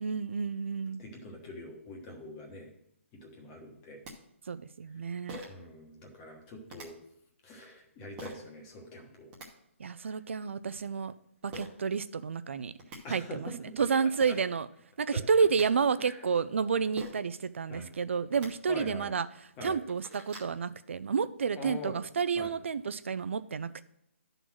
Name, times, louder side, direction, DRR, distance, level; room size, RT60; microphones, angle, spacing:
voice 1, 0.0-1.0 4.5-5.4 9.8-11.1 11.4-12.7 13.1-13.5 13.8-14.7 15.0-19.3 19.6-23.8, right 5 dB, 65° right, 14 dB, 0.5 m, -30 dB
voice 2, 1.0-2.7 3.1-4.0 5.5-7.0 7.4-9.3 10.0-10.2 13.0-13.9 14.3-14.4 15.1-15.2 16.0-16.2 17.7-17.9 18.7-19.1 19.6-19.8 21.5-21.9 22.3-22.5, left 1 dB, 15° left, 3 dB, 1.2 m, -44 dB
sound 1, 3.7-3.8 4.0-4.1 5.3-5.7 6.7-6.9 8.2-8.4 9.1-9.5 11.5-11.7 12.5-12.6 12.8-13.0 13.9-14.0 14.2-14.4 15.2-15.7 17.0-17.3 18.2-18.5 19.1-19.2 19.6-20.5, right 1 dB, 15° right, 1.1 m, -44 dB
11.0 x 3.9 x 6.1 m, 0.78 s
hypercardioid pair, 170°, 7 cm